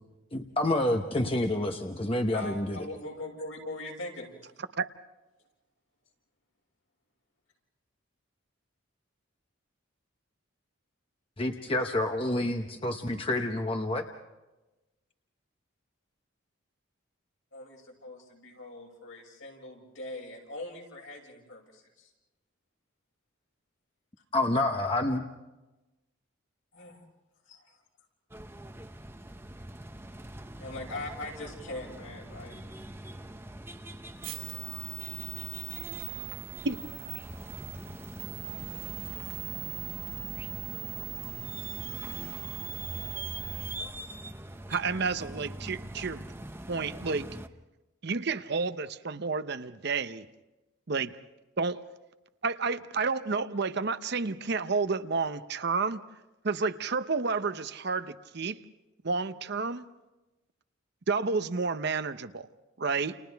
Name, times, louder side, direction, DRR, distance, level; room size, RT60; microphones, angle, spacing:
voice 1, 0.3-2.8 11.4-14.0 24.3-25.2, left 1 dB, 25° left, 0.9 m, -28 dB
voice 2, 2.3-4.3 17.5-22.1 26.7-27.1 27.4-27.8 30.6-32.6, left 2 dB, 70° left, 6.3 m, -41 dB
sound 1, 28.3-47.5, right 1 dB, 10° right, 0.7 m, -43 dB
sound 2, 34.2-43.8, right 11 dB, 90° right, 5.1 m, -40 dB
voice 3, 44.7-46.3 46.7-47.4 48.0-50.2 50.9-51.2 51.6-51.8 52.4-56.0 56.4-58.6 59.0-59.9 61.1-62.5 62.8-63.2, right 4 dB, 55° right, 0.7 m, -30 dB
30.0 x 30.0 x 3.5 m
head